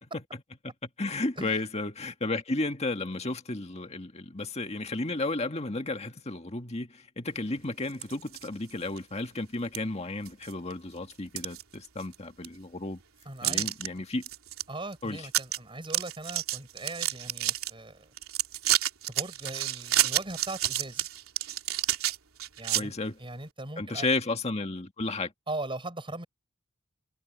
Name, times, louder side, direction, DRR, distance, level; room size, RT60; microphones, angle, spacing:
voice 1, 0.6-13.0 13.4-14.2 15.0-15.3 22.8-23.2 23.8-25.3, left 2 dB, 30° left, 1.9 m, -33 dB
sound 1, 7.9-8.5 9.0-9.1 9.7-9.8 10.3-10.7 11.1-12.1 12.4-12.5 13.4-13.9 14.2-14.6 14.9-15.0 15.3-15.6 15.8-17.7 18.2-22.8, right 13 dB, 85° right, 3.1 m, -29 dB
voice 2, 13.3-13.7 14.7-18.1 19.1-21.1 22.6-22.9 23.2-24.1 25.5-26.2, right 2 dB, 25° right, 6.9 m, -39 dB
head